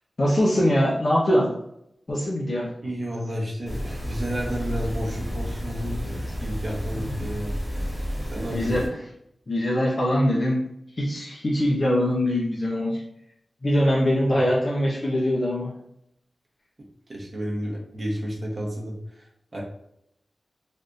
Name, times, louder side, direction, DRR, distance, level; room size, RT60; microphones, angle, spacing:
voice 1, 0.2-1.5 2.1-2.7 8.5-8.8 9.5-10.6 11.0-13.0 13.6-15.7, equal, 40° left, -5 dB, 0.6 m, -22 dB
voice 2, 2.8-7.5 8.2-8.9 17.1-19.3 19.5-19.6, equal, 35° right, -4 dB, 0.9 m, -31 dB
sound 1, 3.7-8.9, equal, 5° left, 1.0 m, -31 dB
3.5 x 2.6 x 2.5 m, 0.77 s
wide cardioid pair, 120°, 0 cm